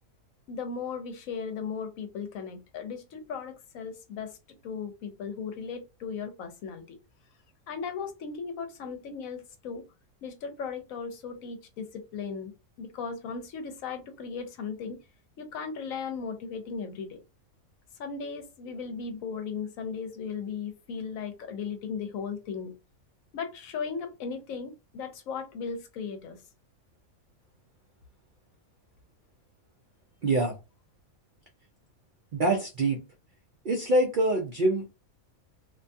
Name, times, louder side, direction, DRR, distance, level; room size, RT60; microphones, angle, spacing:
voice 1, 0.5-4.4 4.6-7.0 7.7-9.8 10.2-12.5 12.8-15.0 15.4-17.2 18.0-22.7 23.3-26.4, left 5 dB, 70° left, 1.0 m, -37 dB
voice 2, 30.2-30.6 32.3-33.0 33.6-34.9, right 2 dB, 80° right, 0.4 m, -25 dB
2.7 x 2.2 x 2.6 m
omnidirectional pair, 1.5 m